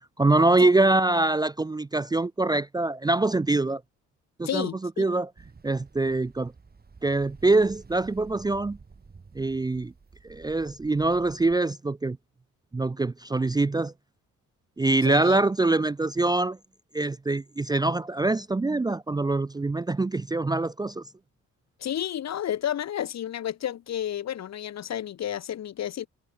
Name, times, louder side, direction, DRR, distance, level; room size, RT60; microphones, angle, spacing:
voice 1, 0.2-3.8 4.4-4.7 5.0-5.3 5.6-6.5 7.0-8.8 9.3-9.9 10.3-12.2 12.7-13.9 14.8-16.6 16.9-21.0, right 2 dB, 15° right, 0.5 m, -24 dB
voice 2, 4.4-5.0 15.0-15.4 21.8-26.1, left 10 dB, 60° left, 1.7 m, -31 dB
Ocean, 5.4-11.6, right 4 dB, 30° right, 5.5 m, -51 dB
cardioid pair, 90°, 30 cm